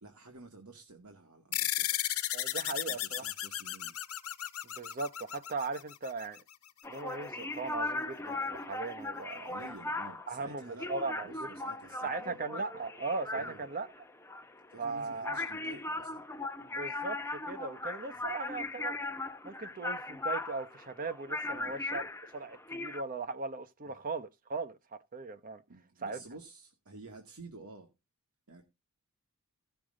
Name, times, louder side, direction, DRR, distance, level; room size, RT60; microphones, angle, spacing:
voice 1, 0.0-2.0 2.7-3.9 9.4-10.9 11.2-12.4 13.3-13.7 14.7-16.2 18.2-18.3 21.5-21.7 23.8-24.0 25.7-27.9 28.5-28.7, right 2 dB, 80° right, 2.1 m, -51 dB
sound 1, 1.5-6.4, left 13 dB, 70° left, 1.2 m, -35 dB
voice 2, 2.3-3.3 4.6-6.4 6.9-9.7 10.3-11.5 12.0-13.9 14.8-15.4 16.6-19.0 19.4-22.0 22.3-25.6 26.0-26.2, right 3 dB, 40° right, 0.9 m, -38 dB
sound 2, 6.8-23.0, left 2 dB, 10° left, 0.9 m, -38 dB
16.0 x 6.9 x 3.8 m
head